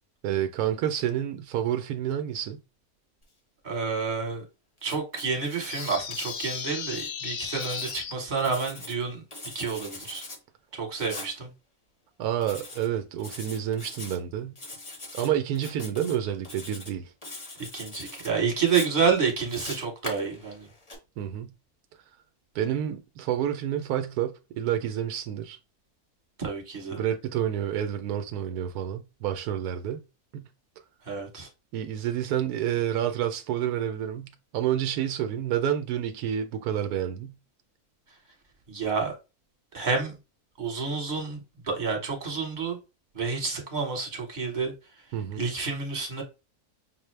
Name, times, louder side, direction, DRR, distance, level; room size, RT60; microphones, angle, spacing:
voice 1, 0.2-2.6 12.2-14.5 15.1-17.1 21.2-21.5 22.5-25.6 26.9-30.0 30.3-30.5 31.7-37.4 45.1-45.5, right 10 dB, 85° right, 1.1 m, -29 dB
voice 2, 3.6-4.4 4.8-9.2 9.5-10.2 10.7-11.5 17.7-20.7 26.4-27.0 31.1-31.5 38.7-39.1 39.7-40.1 40.6-42.8 43.1-44.7 45.4-46.2, right 5 dB, 30° right, 1.3 m, -29 dB
Writing, 4.8-7.1 7.5-9.0 9.3-10.4 11.0-11.3 12.4-12.9 13.2-14.2 14.6-15.3 15.6-16.2 16.4-16.9 17.2-18.3 18.7-21.0, left 2 dB, 25° left, 0.7 m, -42 dB
sound 1, 5.7-8.1, left 7 dB, 65° left, 0.8 m, -35 dB
5.8 x 2.0 x 3.2 m
omnidirectional pair, 1.6 m